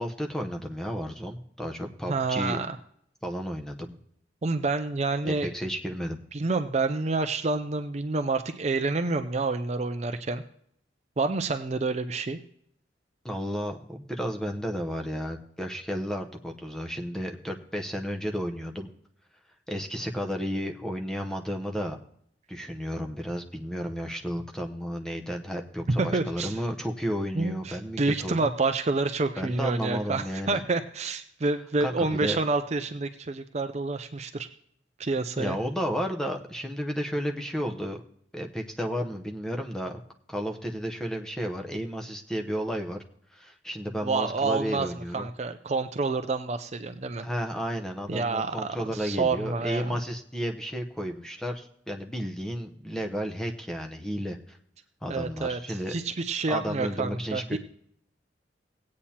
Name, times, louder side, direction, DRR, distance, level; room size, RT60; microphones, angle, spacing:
voice 1, 0.0-2.6 3.2-4.0 5.2-6.2 13.2-18.9 19.7-22.0 22.5-28.5 29.4-30.6 31.8-32.4 35.4-38.0 38.3-40.0 40.3-43.0 43.3-45.3 47.2-54.6 55.0-55.9 56.5-57.6, equal, 5° left, 3 dB, 0.8 m, -32 dB
voice 2, 2.1-2.8 4.4-5.5 6.3-10.4 11.2-12.4 26.0-26.6 27.4-34.5 35.0-35.6 44.0-47.3 48.1-49.9 55.1-57.6, right 3 dB, 35° right, 8 dB, 0.5 m, -28 dB
18.5 x 8.5 x 2.9 m, 0.68 s
head